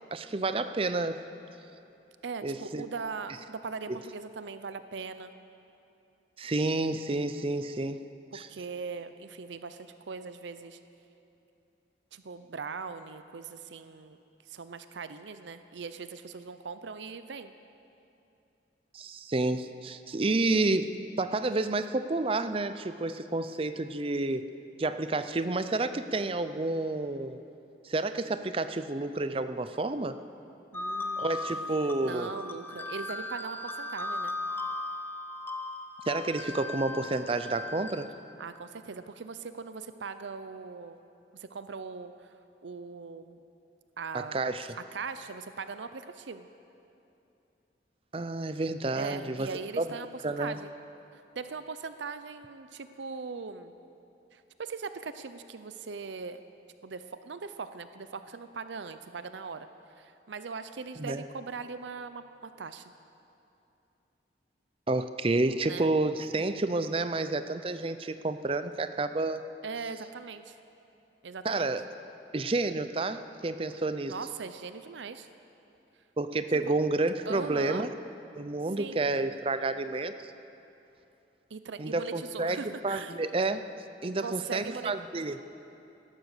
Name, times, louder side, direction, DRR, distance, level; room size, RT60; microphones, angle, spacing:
voice 1, 0.1-1.3 2.4-2.9 3.9-4.0 6.4-8.1 8.3-8.5 18.9-20.9 21.2-24.4 24.8-27.4 27.8-30.2 31.2-32.3 36.1-38.1 44.1-44.7 48.1-49.5 49.8-49.9 50.2-50.6 61.0-61.2 64.9-69.4 71.4-71.9 72.3-74.2 76.2-77.9 78.4-80.1 81.8-83.6 84.0-85.4, right 2 dB, 30° right, 11 dB, 0.5 m, -30 dB
voice 2, 2.2-5.3 8.3-10.8 12.1-14.2 14.5-17.5 30.7-31.5 32.0-34.4 38.4-41.0 41.3-42.3 42.6-43.4 44.0-44.4 44.9-46.5 49.0-50.7 51.1-53.8 54.3-56.4 56.8-59.7 60.0-62.9 65.7-65.9 69.6-70.6 71.2-71.7 74.0-75.3 77.3-77.9 78.8-79.0 81.5-83.2 84.2-84.9, right 5 dB, 85° right, 11 dB, 0.6 m, -40 dB
sound 1, 30.7-38.0, left 2 dB, 10° left, 0.9 m, -37 dB
17.0 x 12.5 x 6.6 m, 2.8 s
head